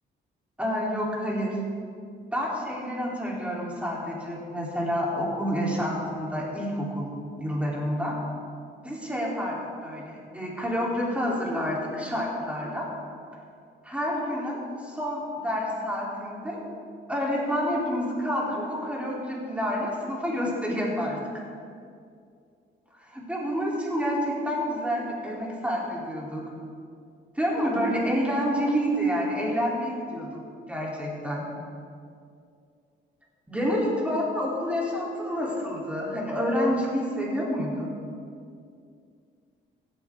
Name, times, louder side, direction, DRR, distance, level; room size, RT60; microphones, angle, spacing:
voice 1, 0.6-1.6 2.3-7.1 7.4-8.2 8.8-12.9 13.8-16.6 17.1-21.2 23.1-26.4 27.3-30.3 30.7-31.5 33.5-37.9, equal, 5° right, -4 dB, 3.3 m, -28 dB
16.5 x 8.8 x 3.6 m, 2.3 s
cardioid pair, 90°, 20 cm